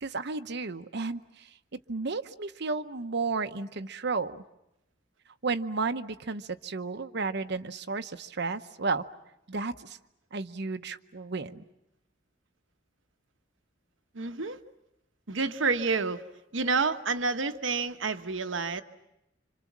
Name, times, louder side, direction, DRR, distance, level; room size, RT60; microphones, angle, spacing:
voice 1, 0.0-4.4 5.4-9.1 9.5-10.0 10.3-11.6, right 4 dB, 65° right, 0.9 m, -33 dB
voice 2, 14.1-14.6 15.3-16.2 16.5-18.8, right 4 dB, 85° right, 1.2 m, -29 dB
27.5 x 26.5 x 7.4 m
head